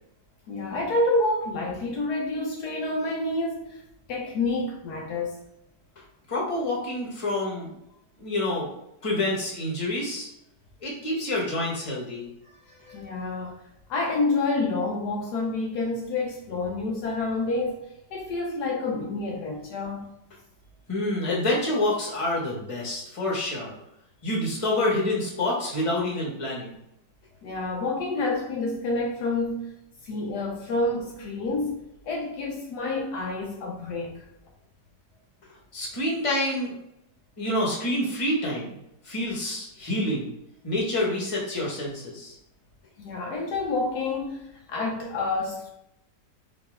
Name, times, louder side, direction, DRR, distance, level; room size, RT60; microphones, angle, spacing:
voice 1, 0.5-3.8 4.1-5.4 12.6-13.6 13.9-20.1 27.4-29.7 30.0-34.3 43.0-45.7, left 2 dB, 70° left, 1.2 m, -28 dB
voice 2, 6.3-7.7 8.2-8.7 9.0-10.3 10.8-12.3 20.9-23.7 24.2-26.7 35.7-36.7 37.4-38.7 39.0-40.3 40.6-42.3, left 1 dB, 20° left, 1.2 m, -27 dB
4.9 x 3.1 x 3.5 m
omnidirectional pair, 1.9 m